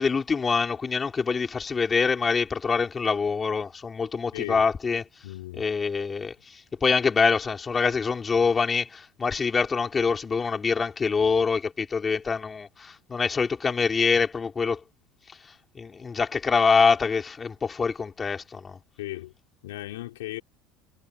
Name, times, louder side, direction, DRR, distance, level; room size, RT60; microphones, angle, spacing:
voice 1, 0.0-5.0 5.6-14.8 15.8-18.8, left 5 dB, 25° left, 4.1 m, -25 dB
voice 2, 4.3-4.7 5.2-5.7 19.0-19.3 19.6-20.4, left 16 dB, 85° left, 5.8 m, -36 dB
supercardioid pair, 95°, 0 cm